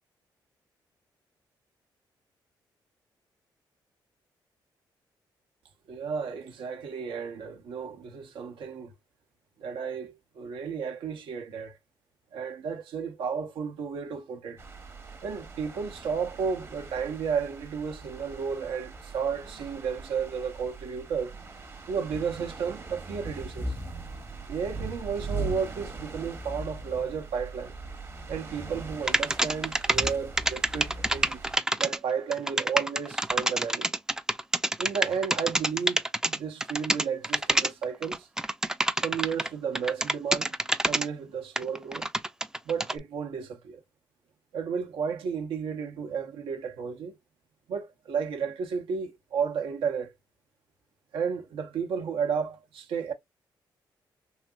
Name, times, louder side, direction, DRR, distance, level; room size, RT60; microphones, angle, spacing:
voice 1, 5.9-8.9 9.6-11.8 12.3-14.6 15.2-21.4 21.9-23.7 24.5-27.7 28.3-31.4 31.8-33.9 34.8-38.3 39.0-40.5 40.9-42.1 42.7-43.8 44.5-47.2 47.7-50.1 51.1-53.1, right 6 dB, 85° right, 0.8 m, -33 dB
sound 1, 14.6-31.6, right 3 dB, 30° right, 0.8 m, -40 dB
sound 2, 29.1-30.1 30.4-39.5 39.7-41.1 41.6-43.0, right 1 dB, 5° right, 0.3 m, -26 dB
3.2 x 2.8 x 2.3 m
cardioid pair, 80°, 9 cm